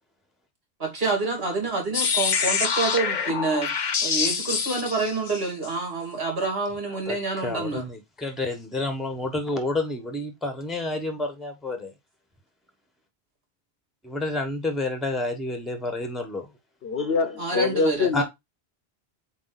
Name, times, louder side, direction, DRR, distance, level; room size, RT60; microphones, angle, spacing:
voice 1, 0.8-3.7 4.0-7.9 17.4-18.2, right 3 dB, 70° right, 2.7 m, -27 dB
sound 1, 1.9-5.7, left 6 dB, 50° left, 0.8 m, -26 dB
voice 2, 6.9-11.9 14.0-16.5 18.1-18.2, left 2 dB, ahead, 1.1 m, -29 dB
voice 3, 16.8-18.2, left 5 dB, 70° left, 1.1 m, -24 dB
8.3 x 2.9 x 4.0 m
omnidirectional pair, 1.1 m